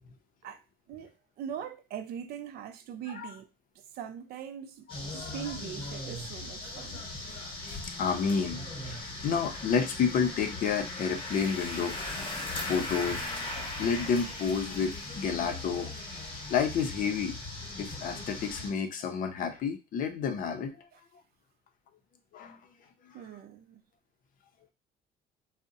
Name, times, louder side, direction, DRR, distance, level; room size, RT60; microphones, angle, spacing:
voice 1, 0.9-3.5 3.8-7.0 20.9-21.0 23.1-23.8, right 9 dB, 65° right, 0.4 m, -41 dB
sound 1, 4.9-18.7, left 2 dB, 30° left, 1.0 m, -38 dB
voice 2, 7.6-12.4 12.6-13.3 13.8-15.9 16.5-17.3 17.8-21.1 22.3-22.6 23.0-23.2, left 6 dB, 55° left, 0.5 m, -30 dB
2.6 x 2.0 x 2.6 m
cardioid pair, 110°, 17 cm